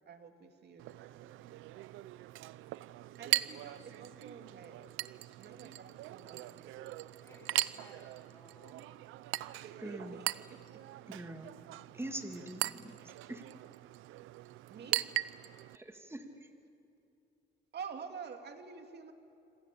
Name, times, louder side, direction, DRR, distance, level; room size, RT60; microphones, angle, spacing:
voice 1, 0.0-1.6 2.9-4.9 5.4-7.1 9.6-10.8 14.7-15.0 17.7-19.1, right 6 dB, 55° right, 6 dB, 2.7 m, -49 dB
Chink clink, 0.8-15.8, right 16 dB, 90° right, 0.6 m, -40 dB
voice 2, 7.2-8.9 14.7-14.9, left 2 dB, 15° left, 0 dB, 7.9 m, -59 dB
voice 3, 9.8-10.2 11.1-11.5 11.9-13.0 13.3-13.4 15.7-16.5, right 1 dB, 10° right, 5 dB, 2.6 m, -43 dB
27.0 x 26.0 x 8.5 m, 2.7 s
cardioid pair, 90°, 20 cm